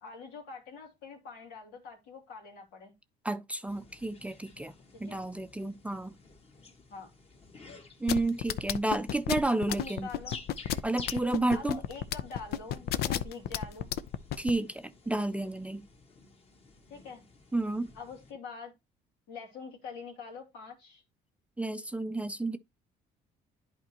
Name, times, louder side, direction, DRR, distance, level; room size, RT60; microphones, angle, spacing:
voice 1, 0.0-2.9 5.0-5.2 6.9-7.1 9.7-10.4 11.4-13.9 16.9-17.2 17.9-18.7 19.3-21.0, left 5 dB, 90° left, 2.7 m, -45 dB
voice 2, 3.2-4.7 5.0-6.1 8.0-10.1 10.8-11.8 14.4-15.9 17.5-17.9 21.6-22.6, right 2 dB, 5° right, 0.5 m, -31 dB
sound 1, 3.7-18.3, left 4 dB, 35° left, 1.8 m, -52 dB
sound 2, 8.1-14.5, left 11 dB, 70° left, 0.6 m, -31 dB
11.0 x 4.4 x 2.9 m
cardioid pair, 110°, 17 cm